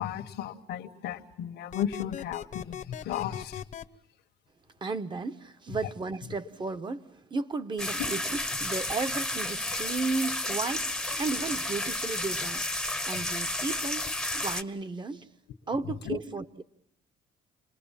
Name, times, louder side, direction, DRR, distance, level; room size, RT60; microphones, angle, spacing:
voice 1, 0.0-3.6 16.0-16.2, left 10 dB, 75° left, 1.5 m, -34 dB
sound 1, 1.7-3.8, left 9 dB, 45° left, 1.0 m, -39 dB
voice 2, 4.8-15.3 15.7-16.6, right 4 dB, 25° right, 1.1 m, -34 dB
sound 2, 7.8-14.6, left 1 dB, 5° left, 1.0 m, -32 dB
29.0 x 20.5 x 7.5 m
cardioid pair, 110°, 17 cm